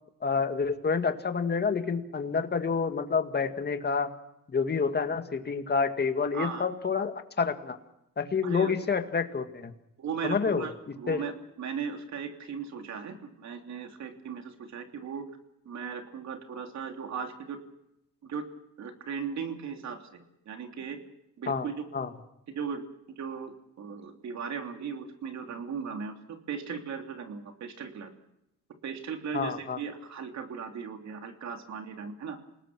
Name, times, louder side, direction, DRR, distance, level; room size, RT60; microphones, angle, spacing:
voice 1, 0.2-4.1 4.5-7.8 8.2-9.7 10.2-10.7 11.1-11.3 21.5-21.7 21.9-22.1 29.3-29.8, left 5 dB, 35° left, 7 dB, 2.0 m, -28 dB
voice 2, 6.3-6.7 8.4-8.7 10.0-15.2 15.6-17.6 18.2-18.4 18.8-21.0 21.4-21.8 22.5-22.8 23.1-26.1 26.5-28.1 28.8-32.4, right 6 dB, 65° right, 4 dB, 3.3 m, -37 dB
28.0 x 19.0 x 6.2 m, 0.82 s
cardioid pair, 90°, 30 cm